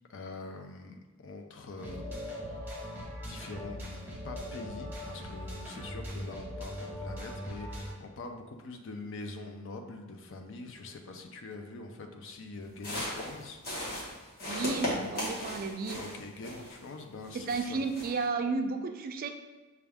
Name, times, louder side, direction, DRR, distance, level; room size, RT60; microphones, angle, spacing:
voice 1, 0.1-2.7 3.3-3.8 4.2-13.6 14.8-15.0 15.9-17.8, left 3 dB, 60° left, 5 dB, 0.5 m, -44 dB
sound 1, 1.8-7.9, equal, 10° right, 0.7 m, -40 dB
sound 2, 12.7-16.9 17.2-18.3, left 1 dB, 45° left, 1.1 m, -37 dB
voice 2, 14.4-16.0 17.5-19.3, right 4 dB, 40° right, 6 dB, 0.3 m, -32 dB
5.9 x 2.3 x 3.4 m, 1.3 s
head